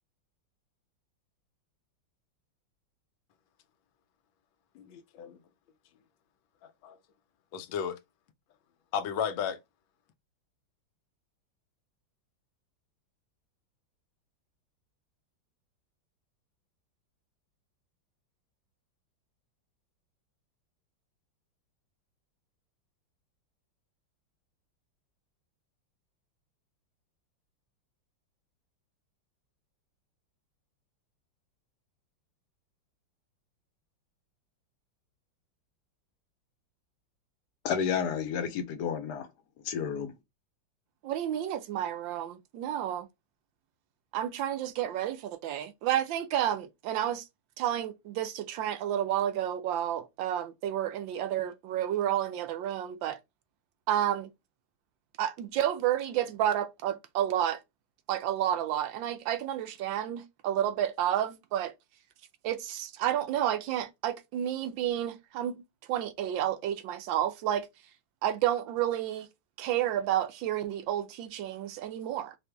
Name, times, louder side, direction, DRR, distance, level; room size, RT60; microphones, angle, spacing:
voice 1, 4.7-5.4 6.6-7.0 7.5-8.0 8.9-9.6, left 7 dB, 85° left, 1.4 m, -34 dB
voice 2, 37.6-39.3 39.6-40.1, left 7 dB, 65° left, 1.2 m, -31 dB
voice 3, 41.0-43.1 44.1-47.2 47.6-53.2 53.9-54.3 55.2-57.6 58.1-61.7 62.4-65.6 65.9-67.7 68.2-69.3 69.6-72.4, right 11 dB, 80° right, 1.3 m, -30 dB
4.1 x 2.5 x 3.3 m
omnidirectional pair, 2.1 m